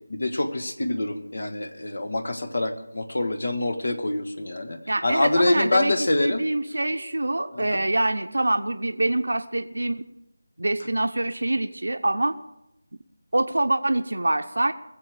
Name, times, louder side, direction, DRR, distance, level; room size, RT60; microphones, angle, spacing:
voice 1, 0.1-6.4 7.5-7.8, left 2 dB, 70° left, 8 dB, 1.5 m, -26 dB
voice 2, 4.9-5.9 6.2-10.0 10.6-12.4 13.3-14.7, right 2 dB, 85° right, 8 dB, 0.7 m, -25 dB
21.5 x 7.6 x 4.9 m, 0.91 s
figure-of-eight pair, 170°, 0 cm